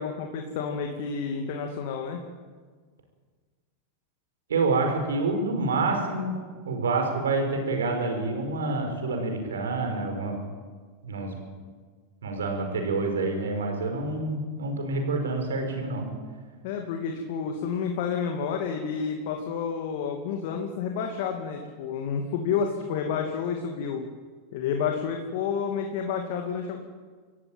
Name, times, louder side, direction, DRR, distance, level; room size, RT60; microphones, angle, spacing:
voice 1, 0.0-2.2 16.6-24.0 24.5-26.8, left 6 dB, 65° left, 3 dB, 2.5 m, -30 dB
voice 2, 4.5-6.3 6.7-10.4 11.0-11.3 12.2-16.1, right 3 dB, 85° right, 4 dB, 5.3 m, -27 dB
26.0 x 15.0 x 9.0 m, 1.5 s
hypercardioid pair, 95°, 0 cm